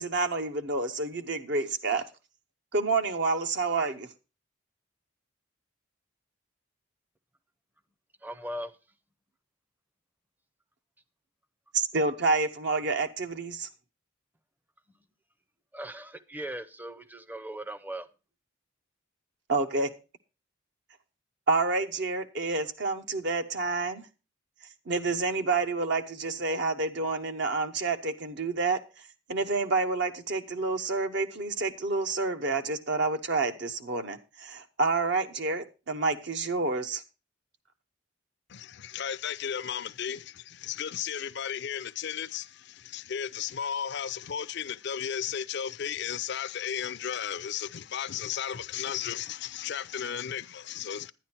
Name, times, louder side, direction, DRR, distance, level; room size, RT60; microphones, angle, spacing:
voice 1, 0.0-2.0 2.7-4.1 11.7-13.7 19.5-19.9 21.5-24.1 24.9-37.0, right 3 dB, 60° right, 0.9 m, -29 dB
voice 2, 8.2-8.7 15.7-18.1, right 1 dB, 10° right, 0.6 m, -38 dB
voice 3, 38.5-51.1, left 8 dB, 55° left, 0.5 m, -34 dB
11.5 x 9.7 x 4.4 m
head